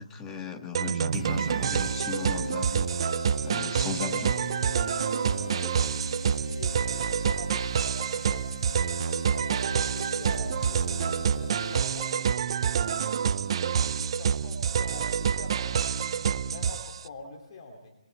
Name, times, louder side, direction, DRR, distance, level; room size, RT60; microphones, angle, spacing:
voice 1, 0.0-2.9 3.4-4.3, left 6 dB, 15° left, 4 dB, 1.6 m, -36 dB
sound 1, 0.7-17.0, right 7 dB, 45° right, 0.7 m, -27 dB
sound 2, 1.1-12.5, left 2 dB, 75° left, 6.4 m, -41 dB
voice 2, 3.8-4.2 5.4-8.5 9.1-12.1 12.8-17.9, left 2 dB, 40° left, 2 dB, 2.9 m, -45 dB
sound 3, 9.9-13.1, right 3 dB, 80° right, 2.1 m, -43 dB
27.5 x 22.0 x 4.6 m, 0.96 s
figure-of-eight pair, 155°, 4 cm